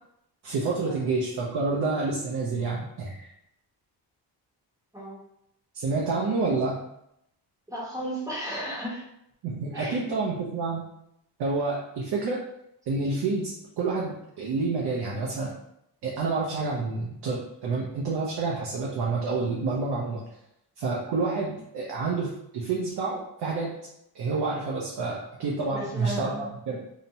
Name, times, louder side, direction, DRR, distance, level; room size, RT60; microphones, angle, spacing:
voice 1, 0.4-3.3 5.7-6.8 9.4-10.9 11.4-12.4 12.9-15.5 16.0-20.2 20.8-23.7 24.1-26.3 26.7-26.8, right 3 dB, 70° right, -3 dB, 0.6 m, -28 dB
voice 2, 7.7-9.0 9.7-10.1 25.7-26.5, equal, 10° right, -6 dB, 0.9 m, -34 dB
2.8 x 2.1 x 2.7 m, 0.79 s
wide cardioid pair, 135°, 42 cm